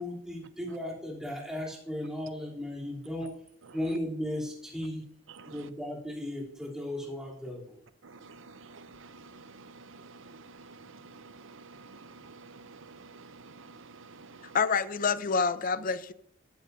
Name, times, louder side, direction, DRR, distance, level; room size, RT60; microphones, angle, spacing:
voice 1, 0.0-3.4 3.7-5.0 5.5-7.6, left 1 dB, 5° right, 3.4 m, -36 dB
voice 2, 5.3-5.7 8.0-14.6, right 4 dB, 65° right, 0.7 m, -50 dB
voice 3, 14.5-16.1, left 5 dB, 40° left, 0.6 m, -27 dB
15.0 x 13.0 x 2.7 m
head